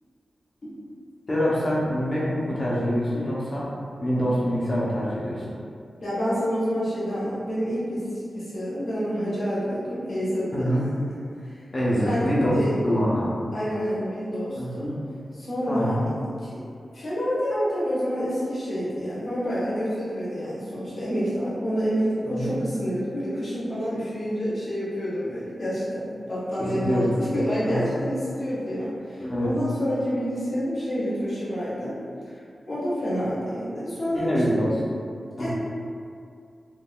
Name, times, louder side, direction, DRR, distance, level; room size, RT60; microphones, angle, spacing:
voice 1, 1.3-3.7 4.0-5.4 10.5-10.8 11.7-12.6 12.8-13.3 14.6-14.9 15.7-16.0 22.2-22.5 26.7-27.2 27.6-27.9 29.2-29.5 34.1-34.7 35.4-35.5, equal, 30° left, -8 dB, 0.8 m, -25 dB
voice 2, 6.0-8.1 8.3-11.1 11.4-11.6 12.0-12.7 13.5-14.9 15.4-16.0 16.4-16.6 16.9-31.9 32.2-32.4 32.6-34.6 35.4-35.5, equal, 45° left, -11 dB, 1.2 m, -28 dB
3.7 x 2.8 x 2.3 m, 2.4 s
wide cardioid pair, 170°, 0 cm